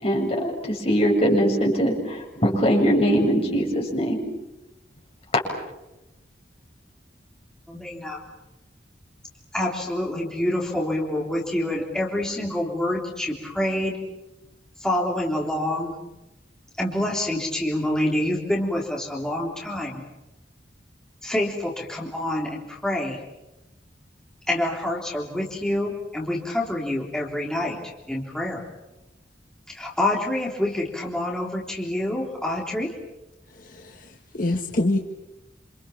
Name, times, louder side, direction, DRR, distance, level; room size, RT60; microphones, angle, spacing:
voice 1, 0.0-4.2, equal, 35° left, -1 dB, 7.6 m, -21 dB
voice 2, 7.7-8.2 9.5-14.0 14.8-15.9 16.8-20.0 21.2-23.2 24.5-27.8 28.1-28.7 29.7-33.0, left 1 dB, 5° left, -3 dB, 3.6 m, -27 dB
voice 3, 33.6-35.0, left 2 dB, 50° left, 3 dB, 1.6 m, -26 dB
28.0 x 27.5 x 7.2 m, 0.98 s
head